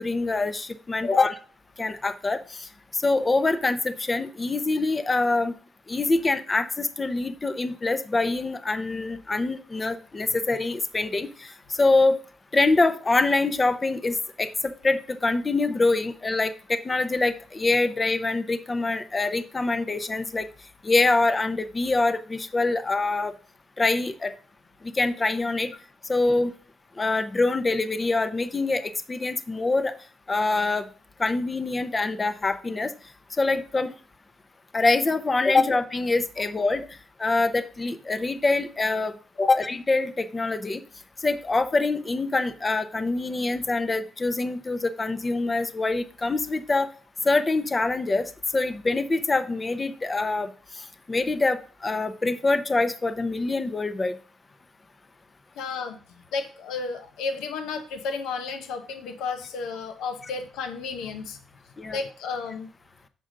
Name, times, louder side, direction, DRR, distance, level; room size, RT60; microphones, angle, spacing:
voice 1, 0.0-1.3 1.8-5.6 5.9-12.2 12.5-20.5 20.8-23.3 23.8-24.3 24.8-25.7 26.1-26.5 27.0-29.9 30.3-30.9 31.2-32.9 33.4-33.9 34.7-36.9 37.2-40.8 41.2-46.9 47.2-50.5 50.8-54.2 61.8-62.0, left 3 dB, 25° left, 11 dB, 0.6 m, -25 dB
voice 2, 55.6-56.0 56.3-61.4 61.9-62.7, left 4 dB, 90° left, 6 dB, 0.8 m, -32 dB
6.7 x 4.9 x 3.8 m, 0.42 s
cardioid pair, 90°, 0 cm